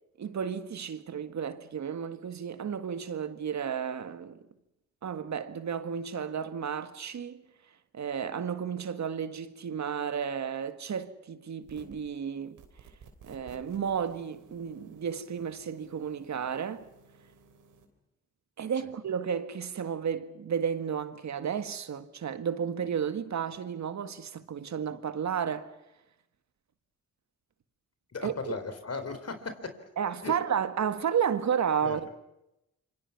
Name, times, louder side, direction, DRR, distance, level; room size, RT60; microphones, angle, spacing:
voice 1, 0.2-4.4 5.0-7.4 7.9-12.6 13.2-16.8 18.6-25.7 28.2-28.6 30.0-32.2, right 7 dB, 60° right, 1.8 m, -32 dB
sound 1, 11.6-12.1 12.6-17.8, right 5 dB, 80° right, 3.5 m, -56 dB
voice 2, 28.1-29.7 30.2-30.4 31.8-32.0, left 4 dB, 50° left, 4.0 m, -36 dB
27.0 x 24.5 x 5.9 m
supercardioid pair, 50°, 31 cm